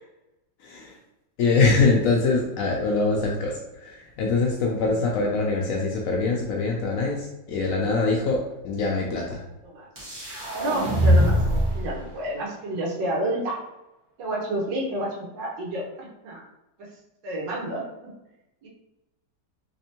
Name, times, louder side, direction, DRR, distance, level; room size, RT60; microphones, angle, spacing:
voice 1, 0.6-1.0 1.4-9.4, left 3 dB, 80° left, -1 dB, 0.7 m, -23 dB
sound 1, 10.0-11.9, equal, 35° right, 1.2 m, -22 dB
voice 2, 10.5-11.4 11.7-13.6 14.2-16.4 16.8-16.9 17.2-18.1 18.6-18.7, right 1 dB, 80° right, -2 dB, 1.6 m, -30 dB
3.4 x 3.3 x 2.8 m, 0.94 s
omnidirectional pair, 1.9 m